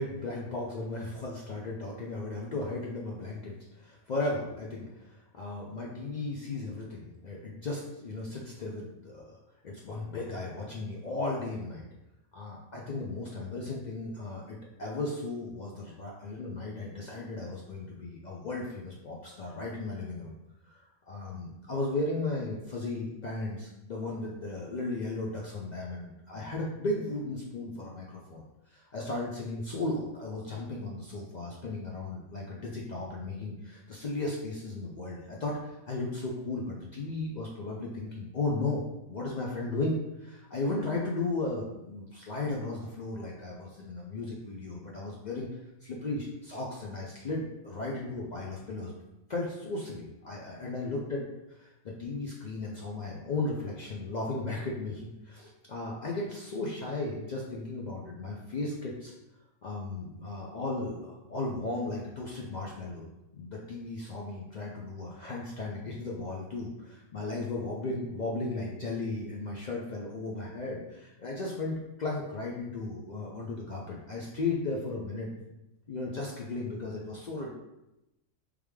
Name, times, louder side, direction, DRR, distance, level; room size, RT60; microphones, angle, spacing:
voice 1, 0.0-9.4 9.6-11.9 12.3-20.3 20.7-20.8 21.1-38.8 39.1-45.5 45.8-48.9 49.3-59.1 59.6-63.0 63.3-75.3 75.9-77.5, left 2 dB, 80° left, -3 dB, 0.4 m, -35 dB
3.4 x 3.4 x 3.2 m, 0.93 s
omnidirectional pair, 1.4 m